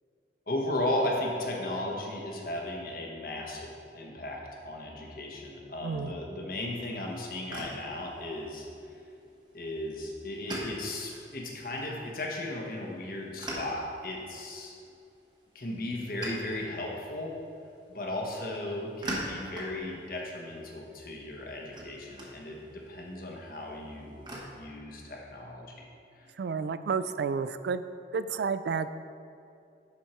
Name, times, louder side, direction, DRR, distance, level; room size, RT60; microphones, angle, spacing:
voice 1, 0.5-9.0 9.5-14.8 15.5-17.4 17.9-24.2 24.5-25.7 26.1-26.3, left 1 dB, 50° left, -1 dB, 1.2 m, -36 dB
sound 1, 6.9-24.4, right 1 dB, 25° right, 1.2 m, -45 dB
voice 2, 26.4-27.8 28.1-28.9, right 5 dB, 70° right, 12 dB, 0.3 m, -30 dB
11.5 x 4.6 x 4.4 m, 2.6 s
head